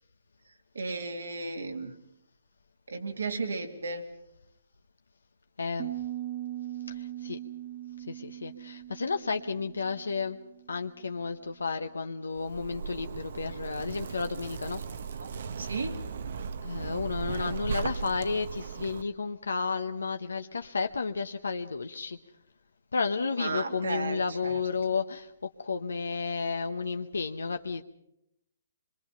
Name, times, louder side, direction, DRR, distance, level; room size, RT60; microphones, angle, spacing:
voice 1, 0.7-1.9 2.9-4.0 15.6-16.0 17.3-17.6 23.4-24.6, right 3 dB, 85° right, 4 dB, 2.9 m, -34 dB
voice 2, 5.6-5.9 6.9-7.4 8.1-10.4 10.7-14.8 16.6-22.2 22.9-25.3 25.6-27.8, left 4 dB, 90° left, 6 dB, 0.9 m, -32 dB
Piano, 5.8-11.4, right 13 dB, 45° right, 1.4 m, -40 dB
Zipper (clothing), 12.4-19.0, right 6 dB, 60° right, 0.9 m, -37 dB
25.0 x 22.5 x 5.7 m, 0.82 s
hypercardioid pair, 145°, 0 cm